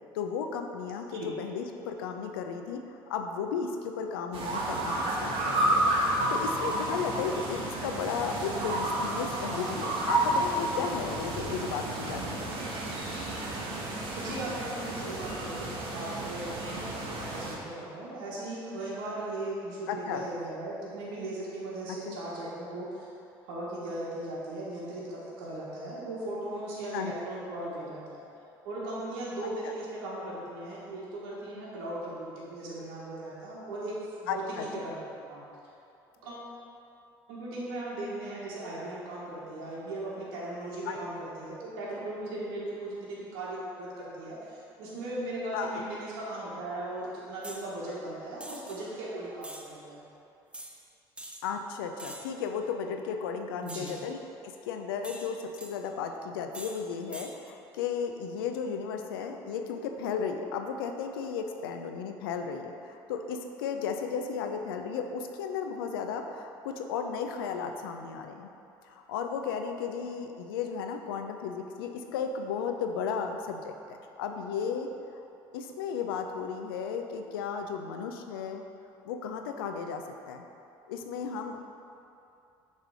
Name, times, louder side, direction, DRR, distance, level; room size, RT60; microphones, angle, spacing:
voice 1, 0.1-12.4 19.9-20.3 22.1-22.2 26.9-27.1 34.3-34.9 40.9-41.0 45.5-45.8 51.4-54.2 54.4-68.5 68.8-74.9 75.5-78.6 79.1-80.4 80.9-81.7, left 6 dB, 85° left, 5 dB, 0.4 m, -34 dB
sound 1, 4.3-17.6, right 1 dB, 55° right, 1.2 m, -31 dB
voice 2, 14.2-23.1 23.4-28.2 28.6-35.0 35.3-35.4 36.2-36.5 37.3-50.0 53.6-53.9, right 1 dB, 80° right, -6 dB, 1.3 m, -38 dB
sound 2, 47.4-47.7 48.4-48.8 49.4-49.7 50.5-50.7 51.2-51.4 52.0-52.4 53.7-54.0 55.0-55.7 56.5-56.8 57.1-57.3, right 1 dB, 10° right, 0.7 m, -44 dB
6.7 x 3.2 x 4.8 m, 2.7 s
hypercardioid pair, 70°, 12 cm